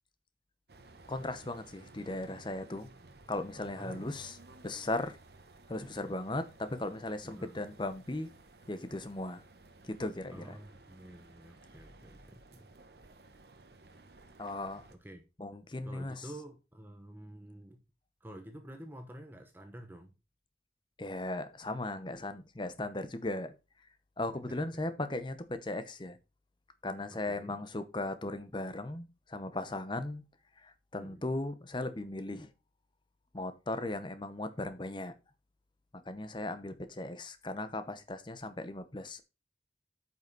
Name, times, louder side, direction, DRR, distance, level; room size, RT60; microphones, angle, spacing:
sound 1, 0.7-15.0, right 2 dB, 60° right, 1.1 m, -56 dB
voice 1, 1.1-2.9 3.3-4.4 4.6-5.2 5.7-8.3 8.7-9.4 9.8-10.6 14.4-14.9 15.4-16.2 21.0-23.5 24.2-26.2 26.8-30.2 30.6-32.5 33.3-35.1 36.1-39.2, left 2 dB, 25° left, 0.8 m, -37 dB
voice 2, 3.7-4.3 7.2-7.6 10.3-12.6 14.9-15.2 15.8-17.8 18.2-20.2 24.3-24.9 27.1-27.6 31.0-31.3, right 1 dB, 10° right, 0.9 m, -49 dB
8.9 x 5.7 x 4.0 m
head